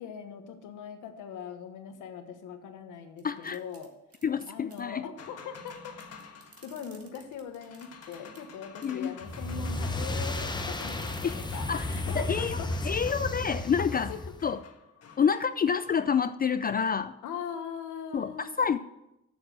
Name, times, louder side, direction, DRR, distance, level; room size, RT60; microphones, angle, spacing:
voice 1, 0.0-3.9 4.5-6.0 6.6-13.1 13.8-14.2 17.2-18.6, left 7 dB, 90° left, 7 dB, 1.3 m, -41 dB
voice 2, 3.2-3.6 4.2-5.0 8.8-9.1 11.2-11.4 11.7-12.6 12.8-14.1 14.4-14.6 15.2-17.1 18.1-18.3 18.6-18.8, left 7 dB, 30° left, 12 dB, 0.4 m, -28 dB
sound 1, 3.2-4.8 5.7-5.8 6.0-8.5 8.8-9.1 10.3-12.2 12.5-12.6 13.0-13.1, right 5 dB, 50° right, 1.9 m, -55 dB
sound 2, 5.2-16.8, left 5 dB, 55° left, 1.5 m, -50 dB
sound 3, 9.2-14.5, left 2 dB, 15° left, 0.9 m, -33 dB
8.1 x 7.2 x 6.3 m, 0.89 s
cardioid pair, 90°, 30 cm